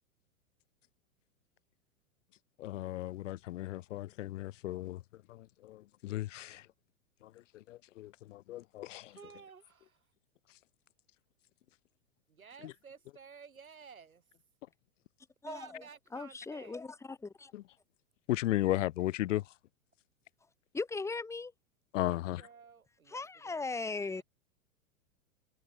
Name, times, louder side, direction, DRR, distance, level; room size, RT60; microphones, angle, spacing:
voice 1, 2.6-5.0 5.3-6.7 7.2-9.1 17.5-17.6 18.3-19.4 21.9-22.4, left 15 dB, 65° left, 0.5 m, -35 dB
voice 2, 9.1-10.1 12.3-14.3 15.4-16.8 21.9-24.2, right 6 dB, 80° right, 5.8 m, -54 dB
voice 3, 15.4-15.8 16.1-17.5 20.7-21.5 23.1-24.2, left 3 dB, 5° left, 1.2 m, -38 dB
figure-of-eight pair, 100°, 41 cm